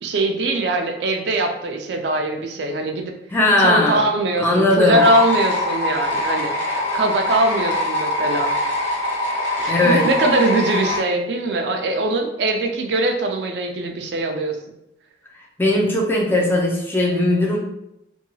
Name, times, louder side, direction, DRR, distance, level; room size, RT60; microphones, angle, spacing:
voice 1, 0.0-3.1 3.6-6.5 6.9-8.5 9.6-14.6, right 1 dB, 75° right, 4 dB, 0.4 m, -21 dB
voice 2, 3.3-4.1 4.4-5.0 9.7-10.1 15.6-17.6, left 1 dB, 10° left, -2 dB, 0.4 m, -18 dB
sound 1, 4.9-11.0, left 1 dB, 75° left, 1.2 m, -23 dB
2.7 x 2.2 x 2.7 m, 0.83 s
head